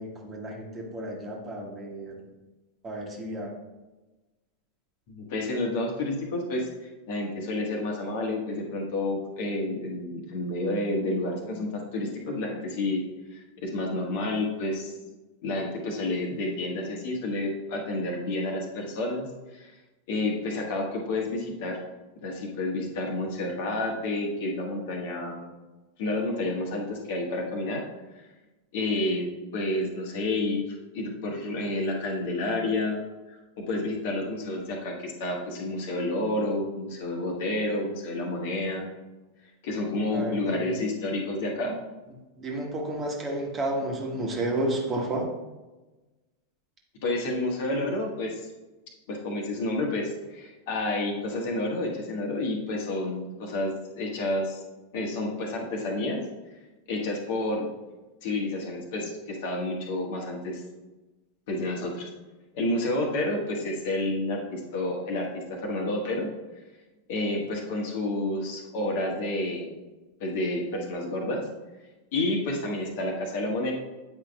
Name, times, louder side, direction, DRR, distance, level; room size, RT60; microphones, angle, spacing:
voice 1, 0.0-2.2 2.8-3.5 40.1-40.8 42.4-45.3, right 1 dB, 20° right, 0 dB, 1.2 m, -31 dB
voice 2, 5.1-6.7 7.1-13.0 13.3-14.9 15.4-19.7 20.1-21.8 22.2-25.5 26.0-27.8 28.7-30.6 30.9-33.4 33.7-38.9 39.6-41.8 47.0-48.5 49.1-54.6 54.9-56.2 56.9-57.7 58.2-60.6 61.5-62.1 62.5-66.3 67.1-69.7 70.2-71.4 72.1-73.7, left 2 dB, 50° left, 0 dB, 1.3 m, -30 dB
8.7 x 5.0 x 2.4 m, 1.1 s
figure-of-eight pair, 90°, 0 cm